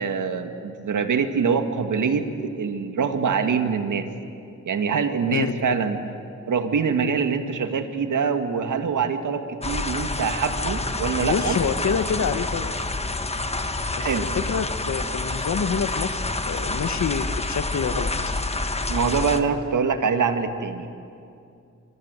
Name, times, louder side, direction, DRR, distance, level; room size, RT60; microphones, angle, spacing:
voice 1, 0.0-4.1 4.7-6.0 6.5-11.6 14.0-14.3 18.9-20.9, right 5 dB, 85° right, 7 dB, 2.0 m, -24 dB
sound 1, 9.6-19.4, left 2 dB, 20° left, 1.4 m, -28 dB
voice 2, 11.2-12.7 13.9-18.1, left 6 dB, 65° left, 11 dB, 1.2 m, -27 dB
25.5 x 24.5 x 8.2 m, 2.5 s
wide cardioid pair, 100°, 30 cm